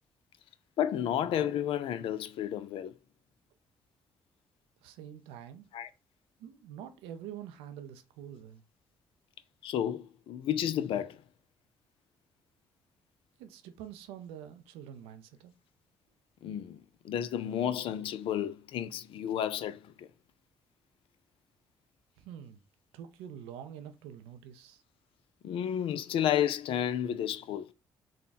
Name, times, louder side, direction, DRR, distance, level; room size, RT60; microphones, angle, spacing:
voice 1, 0.8-2.9 5.7-5.9 9.6-11.2 16.4-20.1 25.4-27.7, left 10 dB, 70° left, 0.4 m, -32 dB
voice 2, 4.8-5.7 6.4-8.6 13.4-15.5 22.2-22.6 22.9-24.8, right 9 dB, 90° right, 0.5 m, -46 dB
3.7 x 2.2 x 3.9 m
supercardioid pair, 60°, 9 cm